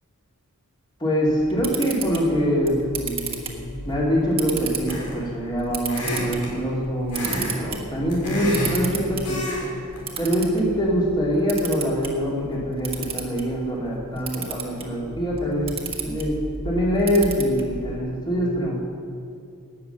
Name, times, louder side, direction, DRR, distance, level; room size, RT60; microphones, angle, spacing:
voice 1, 1.0-9.4 10.2-15.7 16.0-16.4 16.6-18.8, equal, 20° left, -5 dB, 2.6 m, -24 dB
Camera, 1.3-18.0, right 5 dB, 25° right, 1.6 m, -35 dB
sound 1, 4.9-5.3 5.9-6.5 7.1-7.5 7.9-8.8 9.2-9.7 10.0-10.2, left 1 dB, 85° left, 4.3 m, -28 dB
19.0 x 7.5 x 6.8 m, 2.5 s
head